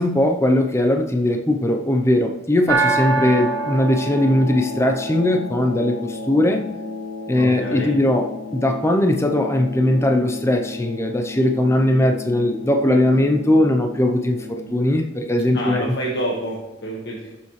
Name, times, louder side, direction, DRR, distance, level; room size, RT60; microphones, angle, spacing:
voice 1, 0.0-6.6 7.3-15.9, left 1 dB, 15° left, 4 dB, 0.7 m, -19 dB
sound 1, 2.7-14.7, right 1 dB, 70° right, 1.5 m, -29 dB
voice 2, 7.4-7.9 15.5-17.4, equal, 60° left, -3 dB, 1.6 m, -28 dB
15.5 x 7.1 x 3.2 m, 0.96 s
head